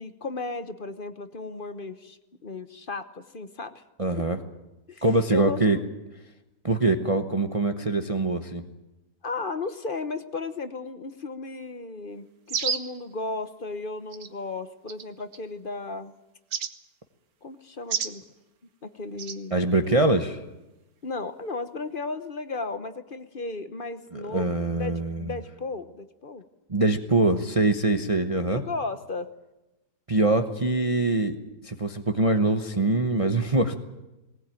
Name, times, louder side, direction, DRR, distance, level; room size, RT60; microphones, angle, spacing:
voice 1, 0.0-3.8 4.1-4.2 4.9-5.0 5.3-5.8 9.2-16.1 17.4-18.2 18.8-20.2 21.0-26.4 28.5-29.3, left 3 dB, 35° left, 11 dB, 1.0 m, -35 dB
voice 2, 4.0-4.4 5.0-5.8 6.6-8.6 19.5-20.3 24.1-25.3 26.7-28.6 30.1-31.4 31.6-33.7, right 2 dB, 25° right, 6 dB, 1.0 m, -23 dB
sound 1, 12.5-13.0 14.1-14.3 14.9-15.4 16.5-16.7 17.9-18.2 19.2-19.4, right 6 dB, 60° right, 1.7 m, -29 dB
20.0 x 19.5 x 9.1 m, 0.97 s
omnidirectional pair, 1.8 m